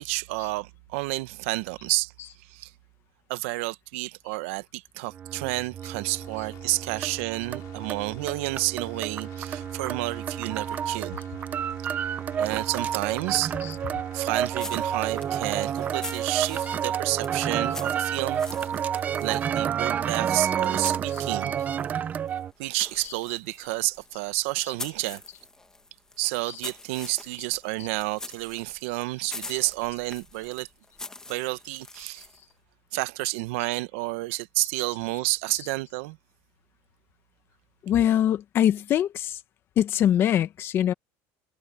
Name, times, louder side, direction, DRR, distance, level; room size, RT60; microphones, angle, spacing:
voice 1, 0.0-2.1 2.5-2.7 3.3-11.2 12.4-13.5 14.1-18.4 19.2-21.5 22.6-25.2 26.2-30.7 31.3-32.3 32.9-36.2, right 22 dB, 80° right, 0.8 m, -30 dB
sound 1, 5.1-22.5, right 8 dB, 25° right, 0.5 m, -30 dB
sound 2, 6.1-15.6, left 19 dB, 55° left, 4.1 m, -52 dB
sound 3, 14.5-21.9 22.3-32.5, left 2 dB, 10° left, 1.3 m, -44 dB
voice 2, 37.8-39.4 39.8-40.9, left 10 dB, 35° left, 1.0 m, -23 dB
cardioid pair, 165°, 7 cm